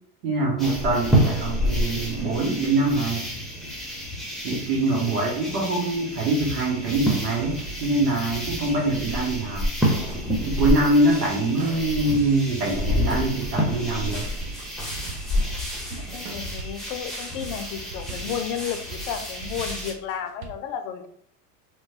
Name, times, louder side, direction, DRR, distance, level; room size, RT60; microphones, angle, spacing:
voice 1, 0.2-3.3 4.4-9.7 10.4-14.3, right 2 dB, 75° right, -1 dB, 1.0 m, -24 dB
sound 1, 0.6-19.9, equal, ahead, 0.7 m, -29 dB
sound 2, 6.6-20.5, right 4 dB, 50° right, 0.7 m, -40 dB
voice 2, 15.9-21.1, left 8 dB, 55° left, 8 dB, 0.5 m, -33 dB
3.0 x 2.2 x 2.7 m, 0.67 s
hypercardioid pair, 95°, 46 cm